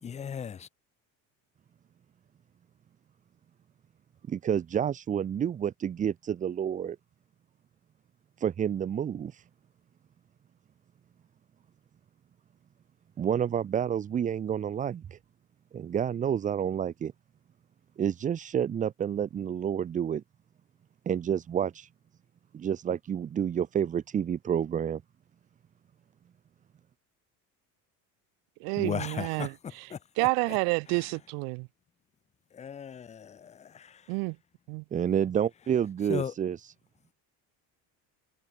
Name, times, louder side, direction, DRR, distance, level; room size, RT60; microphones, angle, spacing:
voice 1, 0.0-0.7 28.7-30.6 30.9-31.1 32.5-34.1 36.1-36.3, left 7 dB, 20° left, 0.7 m, -37 dB
voice 2, 4.3-7.0 8.4-9.4 13.2-15.2 15.7-17.1 18.0-20.2 21.1-21.9 22.5-25.0 34.9-36.7, right 8 dB, 20° right, 0.6 m, -29 dB
voice 3, 28.6-29.5 29.8-29.9 30.2-31.7 34.1-34.3 34.7-34.8, right 36 dB, 75° right, 0.5 m, -29 dB
cardioid pair, 155°, 35 cm